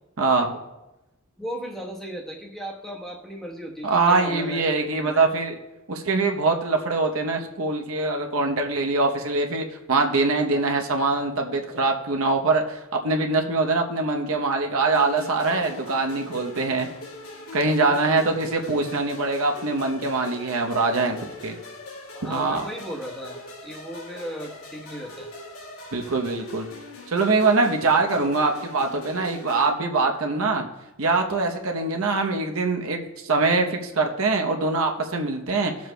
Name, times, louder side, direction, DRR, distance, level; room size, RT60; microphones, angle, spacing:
voice 1, 0.2-0.6 3.8-5.5 5.9-16.9 17.5-21.2 21.4-21.5 22.2-22.7 25.9-26.7 27.1-30.7 31.0-35.9, right 3 dB, 75° right, 3 dB, 0.9 m, -23 dB
voice 2, 1.4-5.3 17.8-18.5 22.1-25.3, equal, ahead, -2 dB, 1.1 m, -36 dB
sound 1, 14.9-29.7, left 2 dB, 70° left, 2.4 m, -41 dB
18.0 x 7.3 x 2.2 m, 1.0 s
head